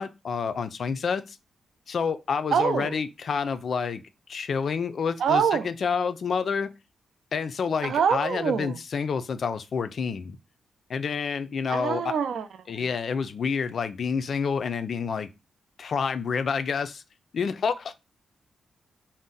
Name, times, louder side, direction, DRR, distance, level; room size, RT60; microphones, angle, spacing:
voice 1, 0.0-1.4 1.9-4.0 4.3-6.7 7.3-10.4 10.9-12.1 12.7-15.3 15.8-17.0 17.3-17.9, left 6 dB, 55° left, 0.3 m, -28 dB
voice 2, 2.5-3.0 5.2-5.7 7.8-8.8 11.7-12.5 12.8-12.9, right 7 dB, 80° right, 0.4 m, -25 dB
2.6 x 2.0 x 3.7 m
wide cardioid pair, 120°, 0 cm